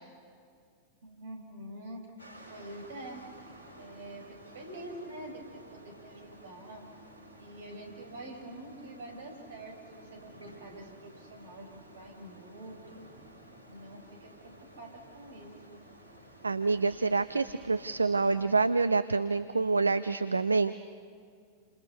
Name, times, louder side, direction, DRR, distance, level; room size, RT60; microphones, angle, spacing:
voice 1, 1.0-2.0 2.5-3.2 3.8-6.8 7.4-13.1 13.7-15.8, right 1 dB, 60° right, 4 dB, 5.5 m, -46 dB
sound 1, 2.2-18.5, right 1 dB, 80° left, 5.5 m, -53 dB
voice 2, 16.4-20.7, right 3 dB, 80° right, 14 dB, 0.5 m, -27 dB
29.5 x 27.0 x 5.8 m, 2.2 s
figure-of-eight pair, 90°, 0 cm